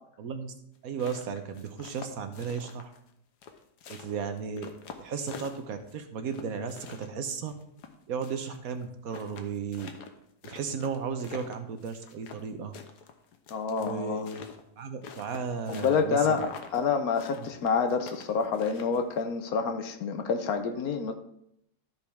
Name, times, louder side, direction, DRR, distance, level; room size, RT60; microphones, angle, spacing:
voice 1, 0.2-0.5 0.8-2.9 3.9-4.7 5.0-7.5 8.1-9.9 10.4-12.7 13.8-14.4 14.8-16.4 17.4-17.5, right 6 dB, 65° right, 7 dB, 1.2 m, -35 dB
sound 1, 0.8-3.1 3.4-5.9 6.3-8.6 8.8-8.9 9.1-12.5 12.7-16.1 16.3-16.8 17.2-19.2, left 7 dB, 90° left, 1.4 m, -46 dB
voice 2, 13.5-14.2 15.7-21.1, left 5 dB, 70° left, 7 dB, 1.2 m, -28 dB
13.5 x 5.3 x 3.4 m, 0.74 s
omnidirectional pair, 1.7 m